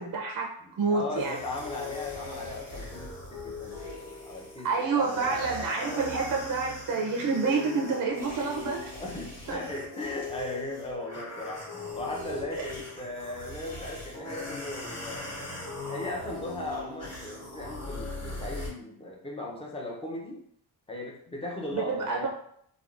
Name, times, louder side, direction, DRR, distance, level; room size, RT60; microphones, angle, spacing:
voice 1, 0.0-0.5 0.8-1.4 4.6-8.8 9.5-9.6 12.6-12.7 21.7-22.3, right 4 dB, 45° right, 0 dB, 0.5 m, -28 dB
voice 2, 0.6-6.2 7.9-8.0 8.3-8.4 8.9-20.4 20.9-22.3, left 2 dB, 15° left, -1 dB, 0.5 m, -38 dB
sound 1, 1.1-18.7, equal, 35° left, 1.4 m, -43 dB
sound 2, 1.6-18.7, left 5 dB, 50° left, 1.3 m, -43 dB
3.5 x 2.3 x 2.4 m, 0.68 s
cardioid pair, 120°, 45 cm